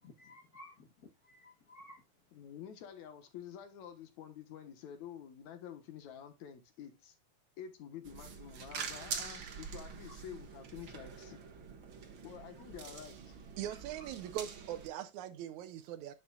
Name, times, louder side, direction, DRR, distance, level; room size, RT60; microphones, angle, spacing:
voice 1, 0.0-2.0 13.6-14.1, left 1 dB, 90° left, 0.8 m, -56 dB
voice 2, 2.3-7.2 7.6-11.4 12.2-13.3, left 9 dB, 70° left, 2.4 m, -49 dB
sound 1, 8.0-14.9, right 6 dB, 50° right, 1.7 m, -45 dB
voice 3, 13.6-16.1, right 11 dB, 75° right, 1.9 m, -41 dB
10.0 x 8.1 x 2.4 m
omnidirectional pair, 3.7 m